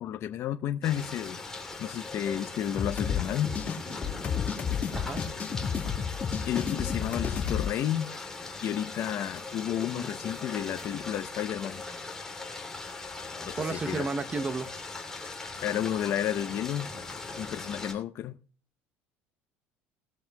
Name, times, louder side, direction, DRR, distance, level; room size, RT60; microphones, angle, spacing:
voice 1, 0.0-1.4 1.8-3.5 6.5-8.1 8.6-11.8 13.5-14.1 15.6-16.9 17.4-18.3, left 10 dB, 50° left, 0.7 m, -31 dB
sound 1, 0.8-17.9, left 3 dB, 10° left, 2.9 m, -40 dB
sound 2, 2.7-7.7, left 7 dB, 30° left, 2.0 m, -31 dB
voice 2, 13.6-14.7, right 3 dB, 25° right, 0.8 m, -32 dB
21.0 x 7.7 x 2.3 m
cardioid pair, 115°, 5 cm